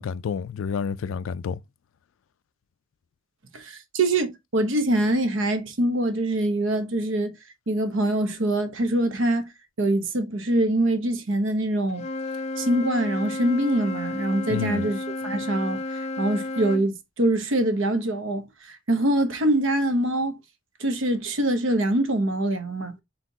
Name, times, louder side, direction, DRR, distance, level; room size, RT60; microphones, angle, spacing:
voice 1, 0.0-1.6 14.5-14.9, left 6 dB, 80° left, 0.3 m, -29 dB
voice 2, 3.5-7.3 7.7-9.5 9.8-12.0 12.6-15.0 15.2-15.8 16.2-20.4 20.8-22.9, right 1 dB, 75° right, 0.9 m, -24 dB
Wind instrument woodwind instrument, 11.9-16.9, left 1 dB, 35° left, 0.6 m, -32 dB
4.3 x 4.0 x 2.7 m
head